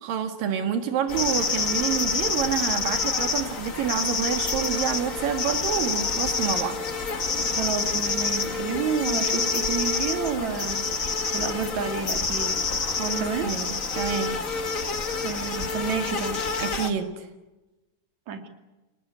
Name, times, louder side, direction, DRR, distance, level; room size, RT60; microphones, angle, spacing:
voice 1, 0.0-6.8 12.9-14.5 16.6-17.3, right 8 dB, 85° right, 7 dB, 3.5 m, -28 dB
sound 1, 1.1-16.9, left 4 dB, 35° left, 1.5 m, -27 dB
voice 2, 7.3-10.8 11.3-12.5 13.2-13.5 15.2-16.4 18.3-18.5, right 6 dB, 60° right, 6 dB, 3.8 m, -30 dB
28.0 x 19.0 x 9.6 m, 1.1 s
omnidirectional pair, 3.9 m